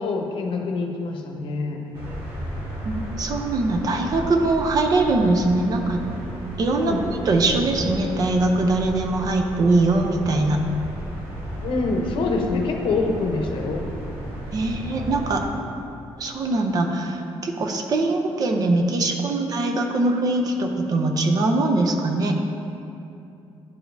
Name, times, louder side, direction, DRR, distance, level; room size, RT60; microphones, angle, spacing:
voice 1, 0.0-1.9 6.7-7.0 11.6-13.8, left 3 dB, 65° left, 3 dB, 0.7 m, -25 dB
sound 1, 1.9-15.4, right 1 dB, 70° right, 1.5 m, -34 dB
voice 2, 2.8-6.0 6.6-10.6 14.5-15.4 16.2-22.4, right 2 dB, 40° right, 3 dB, 0.5 m, -22 dB
11.0 x 4.9 x 2.6 m, 2.7 s
cardioid pair, 170°, 10 cm